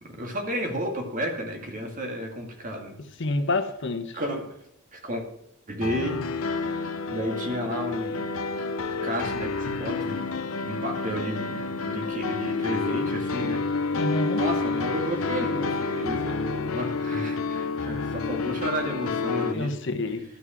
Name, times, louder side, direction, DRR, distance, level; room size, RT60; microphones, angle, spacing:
voice 1, 0.0-3.0 4.1-4.6 4.9-5.2 5.7-6.2 7.1-8.3 9.0-13.6 14.3-19.7, equal, 40° right, 3 dB, 2.1 m, -32 dB
voice 2, 3.2-4.2 13.9-14.4 19.5-20.2, left 2 dB, 60° left, 7 dB, 1.1 m, -28 dB
sound 1, 5.8-19.5, left 4 dB, 75° left, 0.8 m, -29 dB
13.0 x 6.1 x 5.9 m, 0.76 s
head